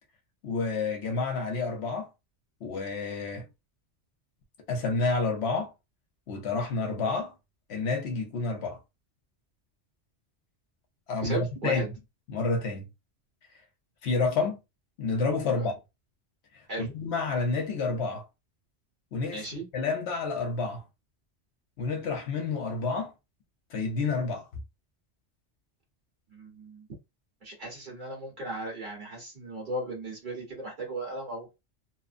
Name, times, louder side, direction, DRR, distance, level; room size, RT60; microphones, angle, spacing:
voice 1, 0.4-2.1 2.6-3.5 4.7-5.7 6.3-7.3 7.7-8.8 11.1-11.8 12.3-12.8 14.0-14.6 15.0-15.7 16.8-18.3 19.1-20.8 21.8-23.1 23.7-24.5, left 4 dB, 70° left, 0.9 m, -29 dB
voice 2, 11.2-11.9 15.5-15.7 16.7-16.9 19.3-19.6 26.3-26.9 27.4-31.5, right 2 dB, 45° right, 1.5 m, -36 dB
2.9 x 2.0 x 2.5 m
omnidirectional pair, 1.2 m